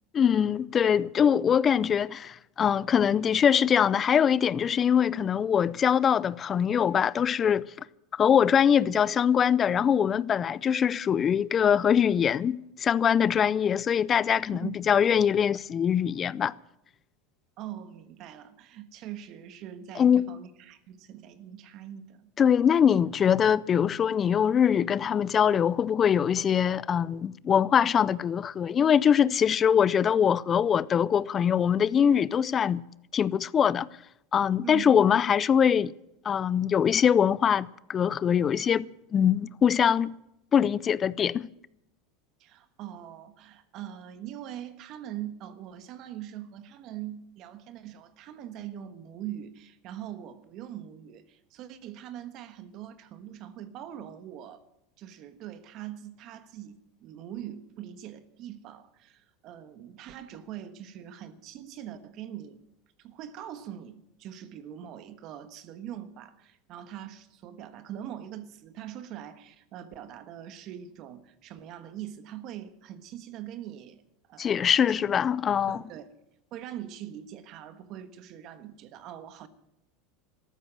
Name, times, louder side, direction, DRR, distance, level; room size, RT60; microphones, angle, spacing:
voice 1, 0.1-7.7 8.2-16.5 20.0-20.3 22.4-32.8 33.1-33.9 34.3-35.9 36.2-40.1 40.5-41.5 74.4-75.8, left 8 dB, 30° left, 0.5 m, -23 dB
voice 2, 14.5-14.8 17.6-22.3 34.6-34.9 42.4-54.6 55.0-62.6 63.0-74.0 74.3-75.1 75.7-76.1 76.5-79.5, right 11 dB, 50° right, 1.4 m, -42 dB
14.0 x 12.5 x 7.6 m
supercardioid pair, 110°, 0 cm